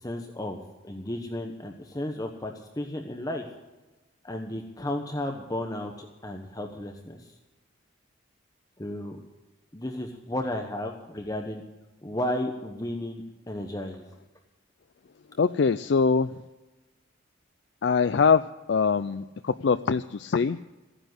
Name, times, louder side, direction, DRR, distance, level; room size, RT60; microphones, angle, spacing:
voice 1, 0.0-3.4 4.2-7.3 8.8-9.2 9.7-11.6 12.0-14.0, left 1 dB, 20° left, 3 dB, 1.1 m, -33 dB
voice 2, 15.4-16.3 17.8-18.4 18.7-20.7, left 5 dB, 60° left, 12 dB, 0.4 m, -23 dB
15.5 x 10.0 x 7.8 m, 1.1 s
head